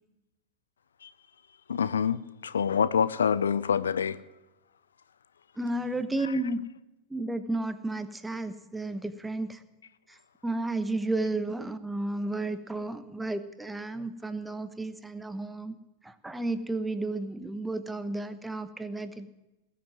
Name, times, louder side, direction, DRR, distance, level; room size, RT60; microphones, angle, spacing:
voice 1, 1.7-4.2 6.2-6.3, left 7 dB, 70° left, 17 dB, 0.5 m, -26 dB
voice 2, 5.6-6.6 7.1-9.6 10.1-10.2 10.4-15.8 16.0-19.3, right 2 dB, 5° right, 11 dB, 1.1 m, -32 dB
19.5 x 7.7 x 9.5 m, 0.99 s
figure-of-eight pair, 90°, 0 cm